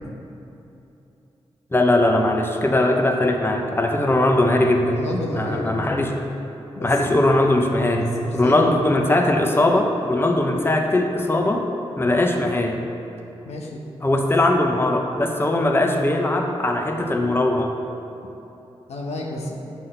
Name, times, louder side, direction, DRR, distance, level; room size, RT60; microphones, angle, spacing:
voice 1, 1.7-5.0 5.4-6.1 6.8-11.7 12.0-12.8 14.0-17.7, left 1 dB, 20° left, 3 dB, 0.8 m, -20 dB
voice 2, 4.9-5.8 6.7-7.0 8.0-8.7 13.4-13.8 14.1-14.2 15.4-15.5 18.9-19.6, left 2 dB, 80° left, -1 dB, 0.8 m, -31 dB
7.5 x 4.1 x 5.5 m, 3.0 s
supercardioid pair, 40°, 11 cm